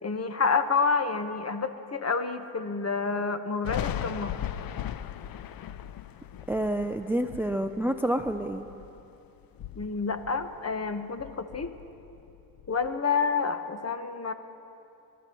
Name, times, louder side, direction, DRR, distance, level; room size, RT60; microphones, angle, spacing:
voice 1, 0.0-4.3 9.8-11.7 12.7-14.3, left 5 dB, 35° left, 8 dB, 1.2 m, -28 dB
Thunder, 3.6-9.1 9.4-10.9 11.2-12.9, left 10 dB, 50° left, 0.6 m, -38 dB
voice 2, 6.5-8.6, right 1 dB, 5° right, 8 dB, 0.5 m, -28 dB
29.0 x 13.5 x 3.1 m, 2.8 s
supercardioid pair, 60°, 46 cm